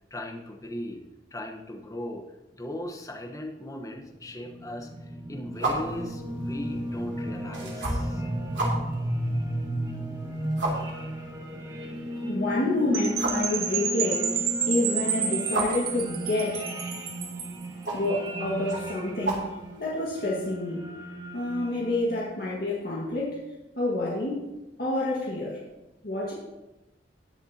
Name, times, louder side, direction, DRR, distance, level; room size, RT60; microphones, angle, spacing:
voice 1, 0.1-1.0 1.3-2.2 2.5-8.6, left 1 dB, 20° left, 2 dB, 1.1 m, -38 dB
sound 1, 4.1-22.4, equal, 20° right, 1.5 m, -34 dB
sound 2, 5.5-20.2, right 2 dB, 85° right, 2.9 m, -36 dB
voice 2, 12.3-16.7 17.9-20.8 21.3-23.4 23.8-24.5 24.8-25.6 26.0-26.3, left 2 dB, 55° left, -6 dB, 1.8 m, -28 dB
Percussion / Wind chime, 12.9-17.6, right 7 dB, 55° right, 1.4 m, -30 dB
18.5 x 6.9 x 2.9 m, 1.0 s
head